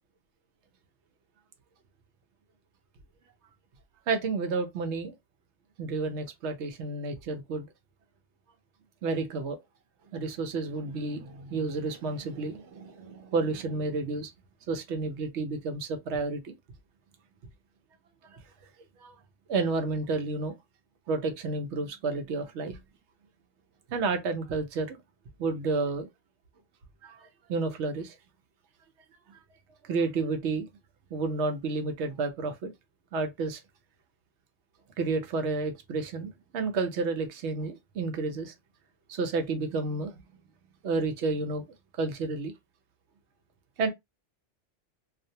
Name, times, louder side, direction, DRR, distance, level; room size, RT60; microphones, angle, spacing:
voice 1, 4.1-5.1 5.8-7.7 9.0-9.6 10.1-14.3 14.7-16.5 18.3-18.4 19.0-19.1 19.5-20.5 21.1-22.8 23.9-25.0 25.4-26.1 27.0-28.2 29.3-29.4 29.8-30.7 31.1-32.7 33.1-33.6 35.0-38.5 39.1-40.2 40.8-41.6 41.9-42.5 43.8-43.9, right 3 dB, 75° right, 0.9 m, -31 dB
2.4 x 2.0 x 2.6 m
omnidirectional pair, 1.2 m